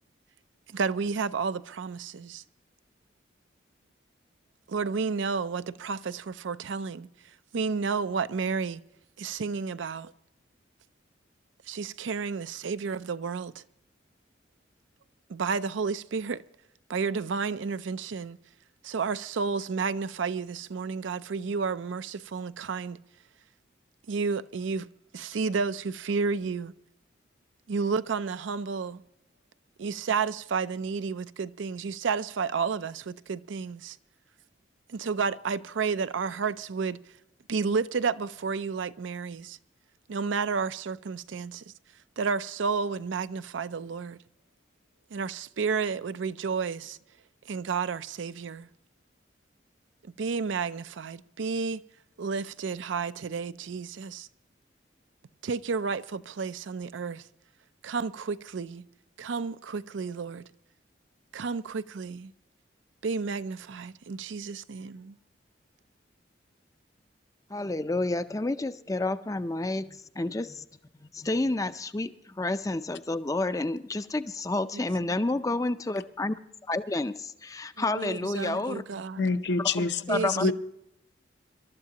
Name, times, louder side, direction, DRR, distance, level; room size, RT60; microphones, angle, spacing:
voice 1, 0.7-2.4 4.7-7.1 7.5-8.8 9.2-10.1 11.7-13.6 15.3-16.5 16.9-18.4 18.8-23.0 24.1-24.9 25.1-26.7 27.7-29.0 29.8-34.0 34.9-37.0 37.5-39.6 40.1-41.6 42.2-44.2 45.1-47.0 47.5-48.7 50.0-51.8 52.2-54.3 55.4-57.3 57.8-58.9 59.2-60.4 61.3-62.3 63.0-65.2 74.7-75.2 77.8-79.2 80.1-80.5, right 5 dB, 80° right, 0.5 m, -31 dB
voice 2, 67.5-70.7 71.0-76.4 76.7-78.8 79.6-79.7 80.1-80.5, left 2 dB, 15° left, 0.4 m, -30 dB
voice 3, 79.2-80.5, left 4 dB, 65° left, 0.7 m, -27 dB
26.0 x 12.5 x 2.9 m
head